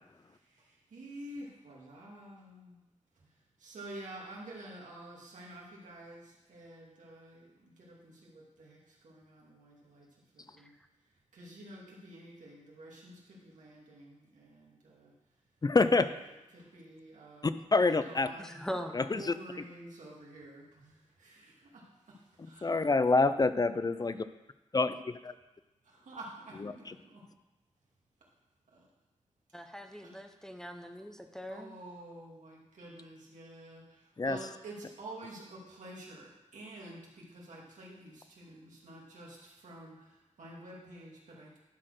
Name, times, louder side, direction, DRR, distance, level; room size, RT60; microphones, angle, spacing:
voice 1, 0.4-2.8 3.6-10.1 10.3-10.7 11.3-15.1 16.5-18.6 19.0-22.7 26.0-27.2 28.7-28.9 30.0-30.2 31.5-41.6, right 1 dB, 90° right, 2.4 m, -49 dB
voice 2, 15.6-16.2 17.4-18.3 18.9-19.3 22.6-24.1 24.7-24.9 26.6-26.9 34.2-34.4, left 3 dB, 30° left, 0.4 m, -26 dB
voice 3, 18.4-19.1 29.5-31.7, equal, 5° left, 0.8 m, -41 dB
11.5 x 4.2 x 6.5 m
wide cardioid pair, 80°, 12 cm